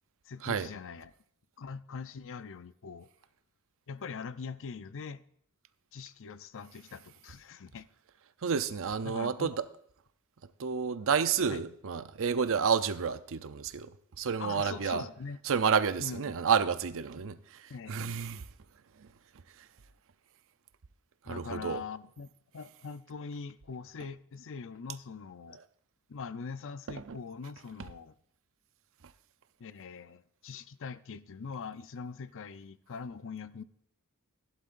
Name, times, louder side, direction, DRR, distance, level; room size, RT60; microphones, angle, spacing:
voice 1, 0.3-1.1 1.6-3.1 3.9-5.2 5.9-7.9 9.0-9.5 11.5-11.6 14.4-15.4 16.0-16.3 17.7-18.2 21.2-25.6 26.1-28.1 29.6-33.6, left 5 dB, 60° left, 0.6 m, -42 dB
voice 2, 8.4-9.6 10.6-13.9 14.2-15.0 15.4-17.4 17.9-18.5 19.0-19.1 21.3-21.8 27.1-27.2, right 6 dB, 65° right, 0.6 m, -30 dB
15.5 x 11.5 x 2.6 m
head